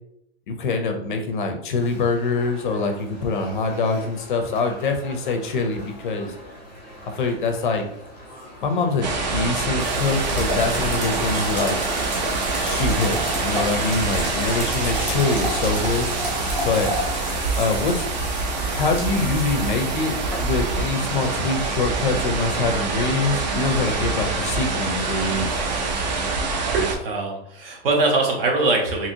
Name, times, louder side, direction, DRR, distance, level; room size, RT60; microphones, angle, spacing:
voice 1, 0.5-6.3 7.0-7.8 8.6-11.8 12.6-16.1 16.6-16.9 17.6-18.1 18.7-25.6, left 3 dB, 50° left, 5 dB, 0.4 m, -24 dB
sound 1, 1.7-18.9, left 1 dB, 15° left, 0.7 m, -43 dB
sound 2, 9.0-27.0, right 3 dB, 45° right, 0.4 m, -26 dB
sound 3, 9.8-26.3, equal, 20° right, 0.7 m, -32 dB
voice 2, 26.7-29.1, right 3 dB, 60° right, 1 dB, 0.9 m, -22 dB
2.8 x 2.7 x 2.6 m, 0.73 s
supercardioid pair, 180°, 33 cm